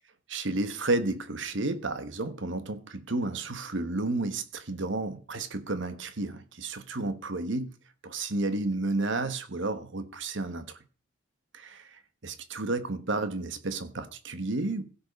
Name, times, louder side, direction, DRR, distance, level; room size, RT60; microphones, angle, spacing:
voice 1, 0.3-7.7 8.0-10.8 11.5-14.8, right 2 dB, 65° right, 1.2 m, -32 dB
16.0 x 5.5 x 5.2 m
head